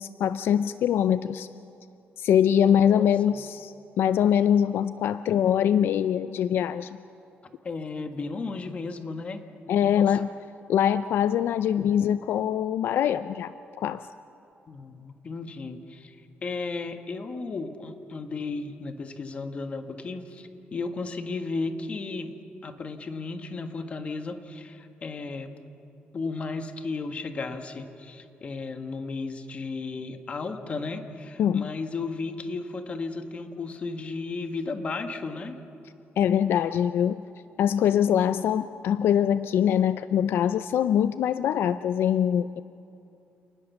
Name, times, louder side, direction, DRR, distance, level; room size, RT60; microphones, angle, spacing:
voice 1, 0.0-1.5 2.2-7.0 9.7-10.3 10.7-14.1 31.4-31.7 36.2-37.2 37.6-42.6, left 9 dB, 75° left, 13 dB, 0.5 m, -23 dB
voice 2, 2.6-3.4 7.6-9.4 9.8-10.2 14.7-16.2 16.4-22.3 22.6-25.5 26.1-35.6, left 3 dB, 30° left, 7 dB, 1.6 m, -34 dB
29.0 x 19.5 x 7.2 m, 2.7 s
wide cardioid pair, 175°, 4 cm